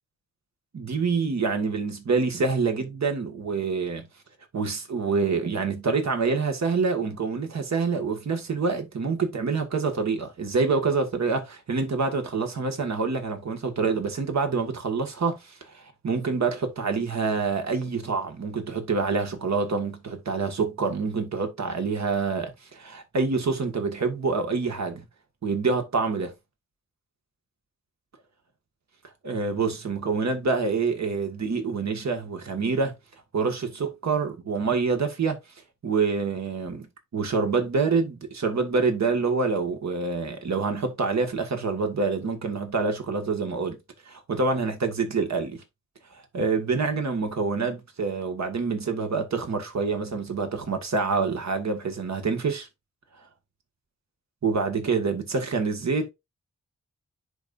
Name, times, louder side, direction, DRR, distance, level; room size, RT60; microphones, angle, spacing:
voice 1, 0.7-4.0 4.5-25.0 25.4-26.3 29.2-33.0 33.3-35.4 35.8-36.9 37.1-43.8 44.1-45.6 46.1-52.7 54.4-56.1, right 4 dB, 65° right, 1.7 m, -26 dB
10.0 x 4.1 x 2.5 m
cardioid pair, 70°, 30 cm